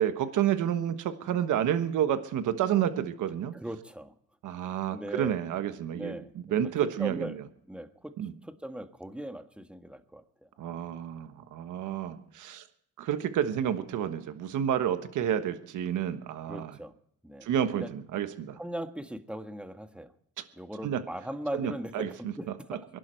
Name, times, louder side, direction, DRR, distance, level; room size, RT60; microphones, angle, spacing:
voice 1, 0.0-3.5 4.4-6.2 6.5-7.3 8.2-8.3 10.6-12.6 13.0-16.7 17.4-18.6 20.4-20.5 20.8-21.0 21.5-22.3, right 10 dB, 80° right, 9 dB, 1.3 m, -30 dB
voice 2, 3.5-4.1 4.6-5.3 5.9-6.6 7.0-7.4 7.7-8.2 8.4-10.5 11.8-12.0 16.5-16.9 17.2-17.5 17.7-17.9 18.6-20.1 20.6-22.8, right 1 dB, 5° right, 8 dB, 1.5 m, -39 dB
24.0 x 11.5 x 4.5 m, 0.70 s
cardioid pair, 90°, 30 cm